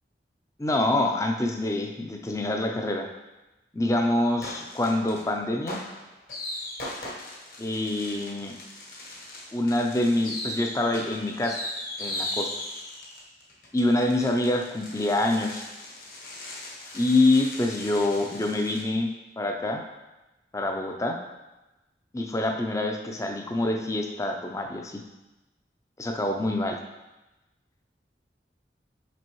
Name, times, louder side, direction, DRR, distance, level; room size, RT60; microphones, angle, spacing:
voice 1, 0.6-3.1 3.7-5.8 7.6-8.6 9.5-11.7 12.0-12.5 13.7-15.6 16.9-19.8 20.5-21.2 22.1-25.0 26.0-26.8, left 2 dB, 20° left, 3 dB, 0.5 m, -26 dB
sound 1, 4.4-5.3 5.7-18.8, left 1 dB, 55° left, 1.1 m, -38 dB
6.0 x 5.3 x 3.0 m, 1.1 s
head